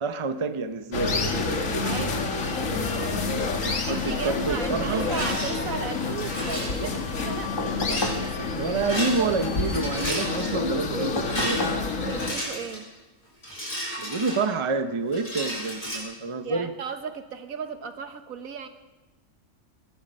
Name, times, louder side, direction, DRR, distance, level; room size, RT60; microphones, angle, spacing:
voice 1, 0.0-1.2 3.6-5.1 8.6-11.7 14.0-16.7, right 4 dB, 30° right, 9 dB, 0.7 m, -28 dB
sound 1, 0.9-12.3, left 3 dB, 65° left, 1.8 m, -28 dB
voice 2, 1.8-2.2 3.9-8.7 9.2-9.3 11.9-12.8 16.4-18.7, right 6 dB, 75° right, 8 dB, 1.6 m, -35 dB
Rattle, 4.9-5.6 6.2-6.8 7.7-8.1 8.8-9.5 9.7-10.5 11.0-12.8 13.4-14.7 15.1-16.0, equal, 35° left, 6.4 m, -33 dB
sound 2, 7.6-8.3 11.2-11.9 13.5-13.6, left 2 dB, 15° left, 1.7 m, -32 dB
23.0 x 10.5 x 5.4 m, 1.1 s
omnidirectional pair, 1.5 m